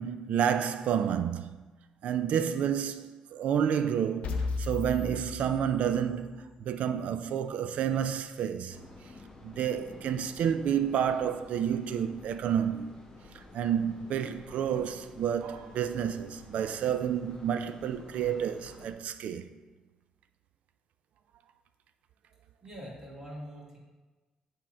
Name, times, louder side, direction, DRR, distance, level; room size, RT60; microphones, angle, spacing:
voice 1, 0.0-1.6 2.0-8.8 9.4-12.9 13.3-19.5, right 8 dB, 75° right, 0.4 m, -30 dB
sound 1, 4.2-6.3, left 4 dB, 70° left, 0.7 m, -35 dB
sound 2, 8.7-18.9, left 2 dB, 30° left, 1.0 m, -51 dB
voice 2, 22.6-23.8, equal, 25° right, 2.2 m, -44 dB
7.6 x 3.7 x 4.4 m
cardioid pair, 110°, 2 cm